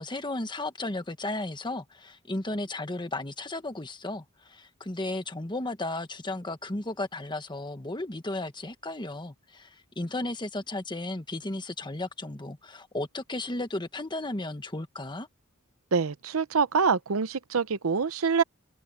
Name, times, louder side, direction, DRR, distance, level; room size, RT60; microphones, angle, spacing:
voice 1, 0.0-15.3, left 2 dB, 20° left, 1.3 m, -34 dB
voice 2, 15.9-18.4, right 5 dB, 70° right, 0.7 m, -25 dB
head